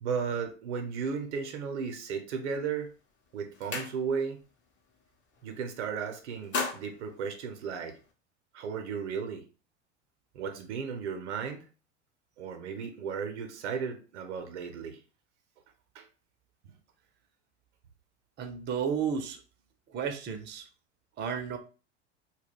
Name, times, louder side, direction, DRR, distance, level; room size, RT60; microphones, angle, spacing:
voice 1, 0.0-2.9 3.3-4.4 5.4-8.0 8.5-9.5 10.3-11.7 12.4-15.0 15.9-16.1 16.6-16.7, right 6 dB, 75° right, 6 dB, 0.6 m, -35 dB
sound 1, 2.7-2.9 3.3-4.4 4.8-5.0 5.3-5.9 6.2-8.1, left 4 dB, 35° left, 0.7 m, -37 dB
voice 2, 18.4-19.4 19.9-20.7 21.2-21.6, right 7 dB, 30° right, 6 dB, 0.5 m, -32 dB
2.2 x 2.1 x 3.5 m, 0.35 s
hypercardioid pair, 75°, 35 cm